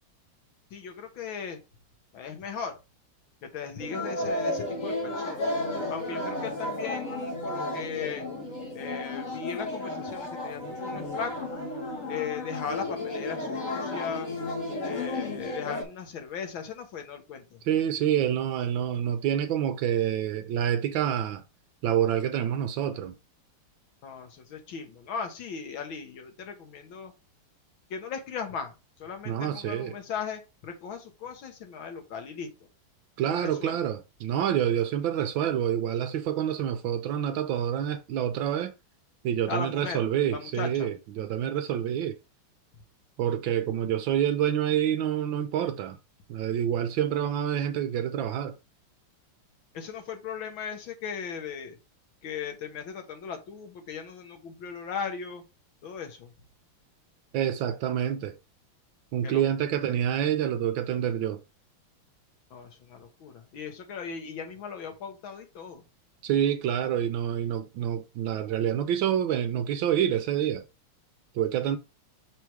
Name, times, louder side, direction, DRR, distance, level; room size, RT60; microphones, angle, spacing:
voice 1, 0.7-1.6 2.1-2.8 3.4-5.5 5.9-8.3 8.7-11.5 12.1-14.3 14.8-17.6 24.0-27.1 27.9-32.5 33.3-33.9 39.5-40.9 49.7-51.8 52.2-55.4 55.8-56.3 59.2-59.4 62.5-65.8, left 6 dB, 70° left, 1.8 m, -37 dB
sound 1, 3.8-15.8, left 2 dB, 40° left, 1.4 m, -33 dB
voice 2, 17.6-21.4 21.8-23.2 29.3-29.9 33.2-38.7 39.2-42.2 43.2-46.0 46.3-48.6 57.3-58.4 59.1-61.4 66.2-70.6 71.3-71.8, right 10 dB, 75° right, 1.2 m, -27 dB
6.2 x 3.4 x 4.6 m
omnidirectional pair, 2.4 m